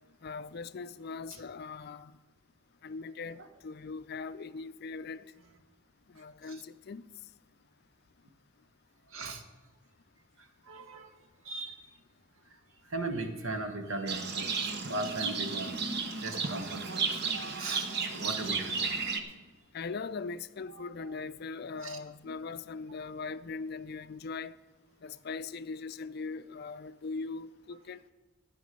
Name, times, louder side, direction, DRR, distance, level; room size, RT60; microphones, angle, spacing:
voice 1, 0.2-2.1 2.8-5.2 6.1-7.0 19.7-24.6 25.0-28.1, left 4 dB, 50° left, 0.4 m, -40 dB
voice 2, 9.1-9.4 10.4-11.1 11.4-11.8 12.9-18.8 20.7-21.1 21.8-22.0, right 2 dB, 80° right, 1.3 m, -38 dB
Livestock farm animals working animals, 14.1-19.2, right 5 dB, 55° right, 1.0 m, -33 dB
12.5 x 9.3 x 5.3 m
head